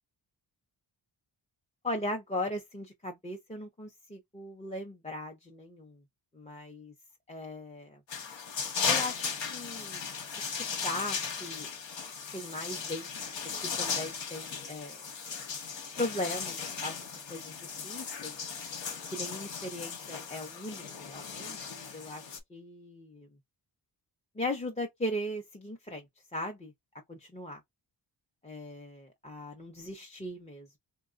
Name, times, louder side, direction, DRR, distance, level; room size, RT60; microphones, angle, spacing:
voice 1, 1.8-6.0 6.3-6.9 7.3-8.0 8.8-10.5 10.8-11.7 12.3-13.3 13.8-15.1 16.0-17.0 17.3-18.4 19.1-23.3 24.3-26.1 26.3-26.7 27.1-27.6 28.4-30.8, left 1 dB, 15° left, 0.6 m, -38 dB
sound 1, 8.1-22.4, left 6 dB, 75° left, 0.9 m, -36 dB
3.7 x 2.2 x 2.5 m
wide cardioid pair, 95°, 45 cm